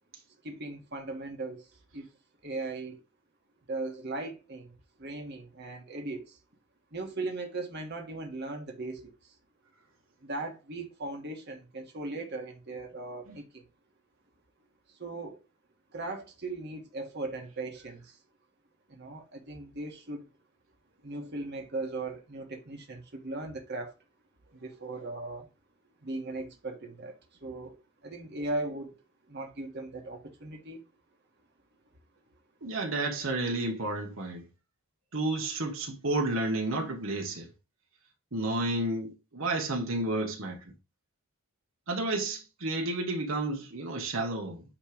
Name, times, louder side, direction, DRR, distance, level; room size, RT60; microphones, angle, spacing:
voice 1, 0.4-2.1 2.4-3.0 3.7-6.4 6.9-9.3 10.2-13.7 14.9-15.4 15.9-18.2 18.9-20.3 21.0-23.9 24.5-25.5 26.0-29.0 29.3-30.8, right 2 dB, 55° right, 1.5 m, -38 dB
voice 2, 32.6-34.4 35.1-37.5 38.3-40.6 41.9-44.6, right 2 dB, 70° right, 1.4 m, -31 dB
8.8 x 3.3 x 5.0 m
head